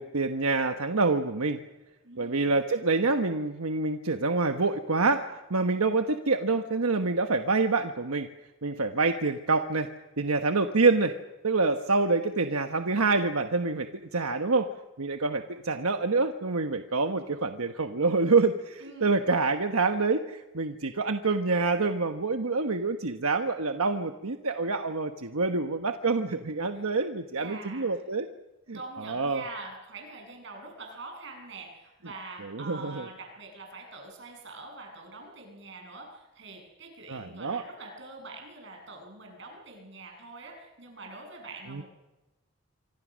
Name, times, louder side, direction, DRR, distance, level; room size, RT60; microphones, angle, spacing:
voice 1, 0.0-1.6 2.2-8.3 8.6-11.2 11.4-14.7 15.0-28.3 28.7-29.4 32.4-33.1 37.1-37.6 41.7-41.8, right 3 dB, 85° right, 6 dB, 1.2 m, -27 dB
voice 2, 2.0-2.6 18.8-19.1 26.7-26.9 27.4-28.0 28.7-41.8, right 3 dB, 55° right, 2 dB, 7.8 m, -44 dB
26.5 x 25.5 x 6.3 m, 1.1 s
head